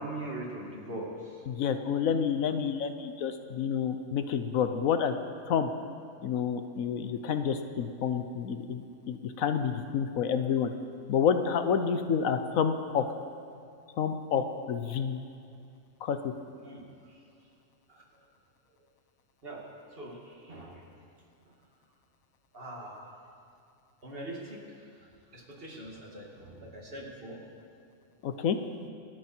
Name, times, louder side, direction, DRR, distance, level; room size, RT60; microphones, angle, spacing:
voice 1, 0.0-1.4 16.6-17.2 17.9-18.0 19.4-19.6 19.9-20.8 22.5-23.2 24.0-24.6 25.3-27.4, right 1 dB, 45° right, -1 dB, 2.5 m, -41 dB
voice 2, 1.5-5.1 5.5-5.7 6.2-10.7 11.1-13.0 14.0-15.2 16.0-16.3 28.2-28.6, left 7 dB, 80° left, 8 dB, 1.2 m, -29 dB
26.5 x 9.6 x 4.5 m, 2.5 s
omnidirectional pair, 1.4 m